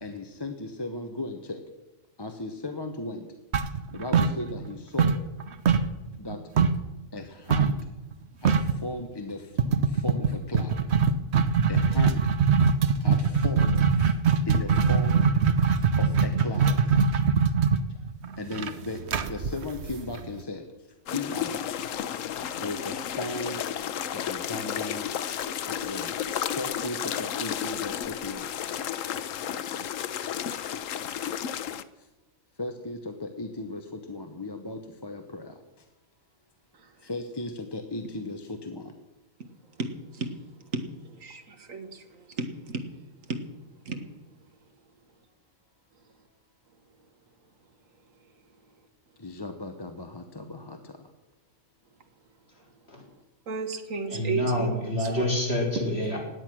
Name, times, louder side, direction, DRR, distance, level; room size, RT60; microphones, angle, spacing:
voice 1, 0.0-1.6 2.2-3.3 3.9-5.2 6.2-6.4 7.1-7.8 8.4-9.5 9.9-10.8 11.7-12.2 13.0-14.1 14.4-15.3 15.8-16.8 18.4-19.0 19.3-20.7 21.1-21.7 22.6-23.6 24.1-25.2 25.7-26.1 26.5-28.5 32.6-35.6 37.0-38.9 49.2-51.1, left 2 dB, 20° left, 0.9 m, -36 dB
sound 1, 3.5-4.7 5.0-6.9 7.5-7.8 8.1-8.2 8.4-8.8 9.6-20.4, right 6 dB, 60° right, 1.1 m, -22 dB
sound 2, 21.1-31.8, left 9 dB, 85° left, 1.1 m, -32 dB
voice 2, 42.4-42.8 43.3-43.4 43.9-44.0 53.5-54.7 55.2-55.3, right 4 dB, 90° right, 1.9 m, -31 dB
voice 3, 54.1-56.2, left 1 dB, 50° left, 4.1 m, -27 dB
17.0 x 10.5 x 6.1 m
omnidirectional pair, 1.3 m